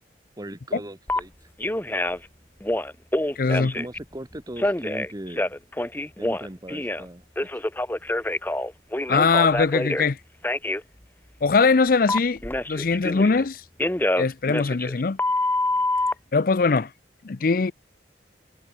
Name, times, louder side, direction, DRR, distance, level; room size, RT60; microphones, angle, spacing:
voice 1, 0.4-1.5 3.4-5.5 6.2-7.5, right 1 dB, 20° right, 1.4 m, -38 dB
Telephone, 1.1-1.2 1.6-2.3 2.6-4.0 4.6-7.0 7.4-10.1 10.4-10.8 12.1-13.4 13.8-16.1, left 1 dB, 10° left, 1.0 m, -26 dB
voice 2, 3.4-3.7 9.1-10.2 11.4-12.4 12.7-13.6 14.2-15.2 16.3-16.9 17.2-17.7, left 4 dB, 50° left, 0.5 m, -21 dB
head